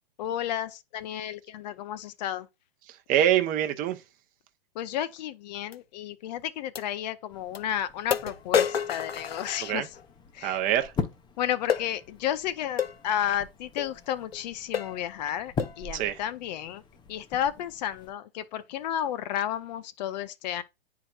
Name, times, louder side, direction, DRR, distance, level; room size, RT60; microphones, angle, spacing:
voice 1, 0.2-2.5 4.8-9.9 10.3-10.6 11.4-16.8 17.1-20.6, left 10 dB, 45° left, 0.7 m, -32 dB
voice 2, 2.9-4.0 9.6-9.9 10.4-10.9 15.9-16.2, right 11 dB, 30° right, 0.8 m, -25 dB
sound 1, 5.7-5.8 6.7-6.9 7.5-7.6 8.1-10.1 11.7-11.9 12.8-13.0 13.8-13.9 14.3-14.4 14.7-15.0 15.6-15.8, left 8 dB, 90° left, 0.6 m, -29 dB
sound 2, 7.3-18.1, left 5 dB, 15° left, 0.8 m, -41 dB
9.6 x 4.8 x 2.4 m
figure-of-eight pair, 110°, 30 cm